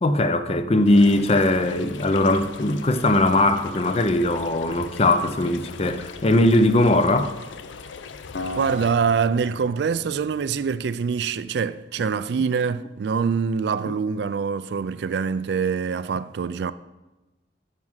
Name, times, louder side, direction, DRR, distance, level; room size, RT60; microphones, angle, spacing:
voice 1, 0.0-7.3 13.9-14.0, left 1 dB, 35° left, 0.5 m, -20 dB
sound 1, 0.9-8.9, left 5 dB, 90° left, 0.6 m, -40 dB
Acoustic guitar, 8.3-11.5, left 1 dB, 70° left, 0.9 m, -37 dB
voice 2, 8.6-16.7, right 6 dB, 60° right, 0.3 m, -24 dB
9.6 x 6.1 x 5.6 m
head